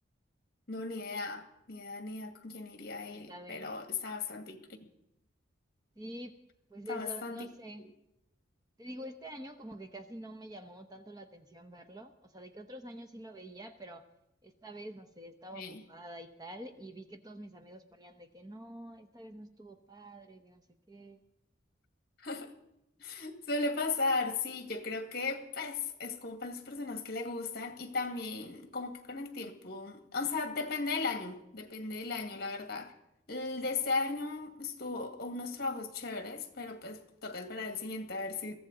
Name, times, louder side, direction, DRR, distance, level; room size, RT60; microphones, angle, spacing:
voice 1, 0.7-4.9 6.9-7.5 15.5-15.8 22.2-22.5 23.0-32.9 33.3-38.6, left 3 dB, 50° left, 1.8 m, -36 dB
voice 2, 3.1-3.7 6.0-6.4 6.7-7.9 8.8-14.0 14.4-21.2, right 1 dB, 20° right, 0.9 m, -47 dB
22.0 x 15.5 x 3.9 m
head